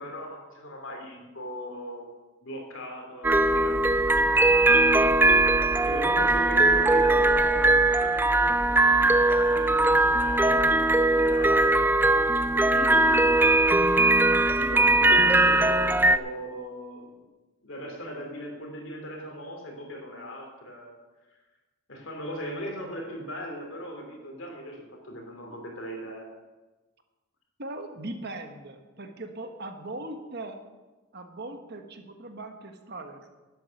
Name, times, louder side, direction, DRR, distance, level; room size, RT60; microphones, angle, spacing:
voice 1, 0.0-2.1 2.4-5.2 5.8-11.9 12.4-13.5 14.4-17.2 17.6-21.0 21.9-26.3, equal, 60° left, 2 dB, 3.2 m, -38 dB
sound 1, 3.2-16.2, right 2 dB, 10° right, 0.3 m, -20 dB
voice 2, 27.6-30.6 31.1-33.3, right 2 dB, 50° right, 6 dB, 1.3 m, -39 dB
12.0 x 9.7 x 6.5 m, 1.2 s
head